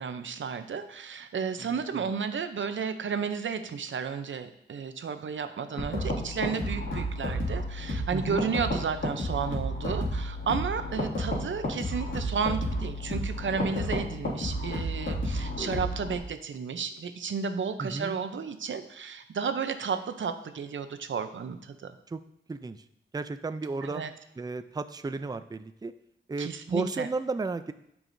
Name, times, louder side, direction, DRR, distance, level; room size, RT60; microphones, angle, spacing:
voice 1, 0.0-21.9 23.8-24.1 26.4-27.1, right 6 dB, 75° right, 9 dB, 0.7 m, -33 dB
voice 2, 1.6-2.1 8.1-8.5 17.8-18.1 22.1-22.2 22.5-22.8 23.1-24.0 24.4-25.9 26.3-27.7, right 3 dB, 20° right, 10 dB, 0.4 m, -33 dB
sound 1, 5.8-16.2, equal, 80° left, 2.2 m, -32 dB
12.0 x 4.8 x 2.7 m, 0.76 s
cardioid pair, 55°, 20 cm